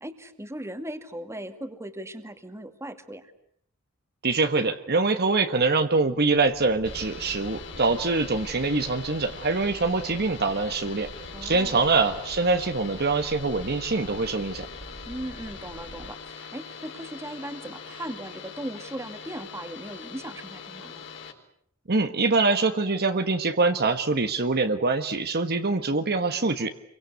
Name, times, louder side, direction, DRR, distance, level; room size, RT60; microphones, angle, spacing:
voice 1, 0.0-3.3 11.3-12.2 15.1-21.0, right 1 dB, 15° right, 8 dB, 2.2 m, -38 dB
voice 2, 4.2-11.1 11.4-14.6 21.9-26.7, right 3 dB, 45° right, 7 dB, 1.5 m, -24 dB
sound 1, 6.3-16.1, right 1 dB, 75° right, 2.4 m, -45 dB
sound 2, 6.8-21.3, left 6 dB, 55° left, 4.0 m, -42 dB
29.0 x 24.0 x 8.3 m, 0.69 s
head